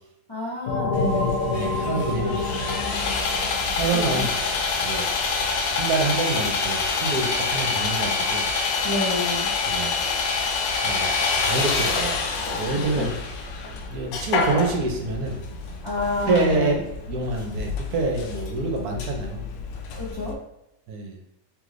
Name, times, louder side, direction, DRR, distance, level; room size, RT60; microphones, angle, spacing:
voice 1, 0.3-1.4 3.9-4.3 8.8-9.5 12.7-13.1 15.8-16.8 19.9-20.4, left 2 dB, 45° left, -6 dB, 0.3 m, -29 dB
sound 1, 0.7-5.1, left 3 dB, 65° left, 0.8 m, -28 dB
Sawing, 0.9-20.3, left 4 dB, 80° left, 1.3 m, -27 dB
voice 2, 1.5-2.5 3.7-4.3 4.8-5.1 5.7-8.5 9.7-9.9 10.8-11.1 11.4-12.2 12.6-13.2 13.9-15.4 16.3-16.7 17.1-19.4 20.9-21.2, right 3 dB, 65° right, 2 dB, 1.1 m, -26 dB
3.4 x 3.3 x 3.7 m, 0.83 s
omnidirectional pair, 1.9 m